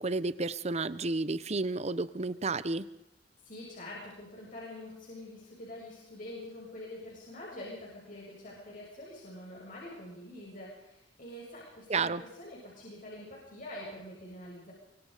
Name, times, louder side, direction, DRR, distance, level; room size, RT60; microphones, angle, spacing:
voice 1, 0.0-2.8 11.9-12.2, right 3 dB, 40° right, 15 dB, 0.8 m, -31 dB
voice 2, 3.5-14.7, left 1 dB, 50° left, -5 dB, 7.0 m, -45 dB
24.0 x 23.5 x 5.1 m, 0.82 s
head